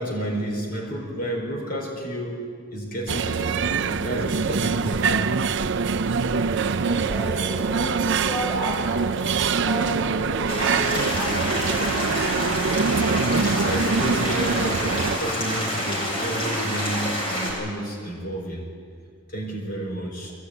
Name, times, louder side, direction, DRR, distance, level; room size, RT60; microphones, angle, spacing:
voice 1, 0.0-2.4 2.7-5.3 12.9-18.7 19.3-20.3, right 1 dB, 40° left, -1 dB, 4.5 m, -31 dB
sound 1, 3.1-15.2, right 5 dB, 55° right, 0.5 m, -24 dB
voice 2, 6.5-12.3, equal, ahead, -8 dB, 5.5 m, -33 dB
sound 2, 10.5-17.5, equal, 25° left, 7.6 m, -27 dB
22.5 x 17.0 x 9.8 m, 2.1 s
head